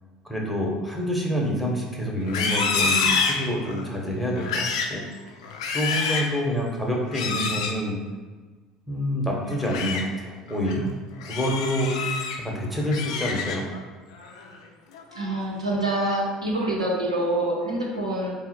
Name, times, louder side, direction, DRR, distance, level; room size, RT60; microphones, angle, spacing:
voice 1, 0.2-5.0 5.7-8.0 8.9-10.9 11.3-13.6, equal, 5° right, -2 dB, 1.0 m, -27 dB
Livestock farm animals working animals, 2.2-3.9 4.3-5.0 5.4-6.3 7.1-7.8 9.5-10.0 10.5-10.7 11.2-12.4 12.8-13.8 14.2-14.5 14.9-15.4, left 5 dB, 70° left, 0.4 m, -27 dB
voice 2, 15.1-18.3, right 1 dB, 90° right, -2 dB, 0.7 m, -26 dB
4.3 x 2.1 x 4.2 m, 1.3 s
figure-of-eight pair, 65°, 3 cm